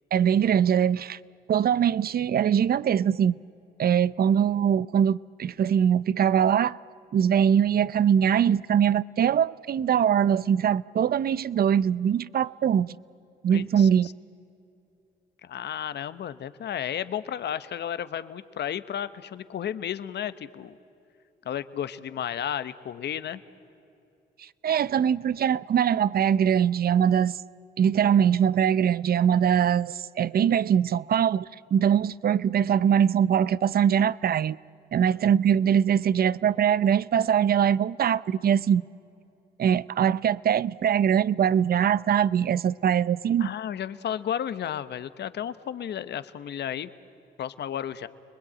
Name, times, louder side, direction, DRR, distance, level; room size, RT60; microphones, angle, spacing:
voice 1, 0.1-1.2 1.5-3.3 3.8-6.8 7.1-13.0 13.4-14.1 24.4-27.4 27.8-34.6 34.9-38.9 39.6-43.5, right 8 dB, 55° right, 0.6 m, -22 dB
voice 2, 13.5-14.1 15.4-20.8 21.4-23.4 43.4-46.9 47.4-48.1, left 9 dB, 70° left, 1.0 m, -33 dB
30.0 x 21.0 x 8.8 m
cardioid pair, 75°, 19 cm